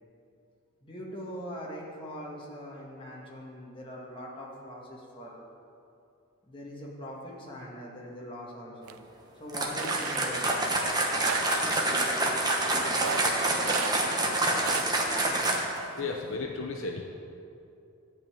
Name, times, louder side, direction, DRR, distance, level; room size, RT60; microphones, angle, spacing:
voice 1, 0.8-5.4 6.5-9.0 9.4-10.9 11.9-12.1 12.7-13.9 14.2-14.3 14.8-15.9, equal, 25° left, -3 dB, 1.9 m, -42 dB
sound 1, 8.9-9.0 9.6-10.3 11.0-11.7 12.9-14.0 14.3-14.9, right 8 dB, 80° right, 0.4 m, -36 dB
sound 2, 9.5-15.8, right 1 dB, 20° right, 1.1 m, -27 dB
voice 2, 16.0-17.0, left 3 dB, 65° left, 2 dB, 0.9 m, -33 dB
12.0 x 5.6 x 8.9 m, 2.6 s
head